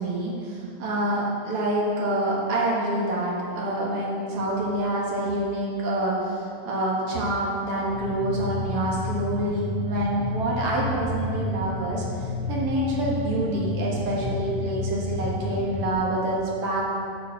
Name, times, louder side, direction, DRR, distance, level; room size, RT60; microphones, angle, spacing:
voice 1, 0.0-12.0 12.5-16.9, right 1 dB, 60° right, -4 dB, 1.4 m, -27 dB
sound 1, 7.9-15.9, left 2 dB, 80° left, 3.9 m, -31 dB
11.0 x 4.8 x 6.3 m, 2.4 s
omnidirectional pair, 4.6 m